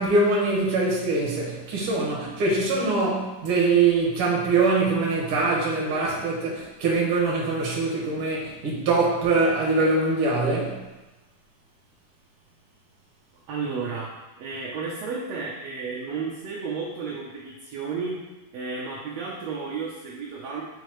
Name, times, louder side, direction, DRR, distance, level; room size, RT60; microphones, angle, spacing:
voice 1, 0.0-10.8, right 3 dB, 50° right, -3 dB, 2.0 m, -23 dB
voice 2, 13.5-18.2 18.5-20.6, right 4 dB, 70° right, -3 dB, 1.8 m, -32 dB
6.8 x 5.3 x 3.1 m, 1.1 s
omnidirectional pair, 3.6 m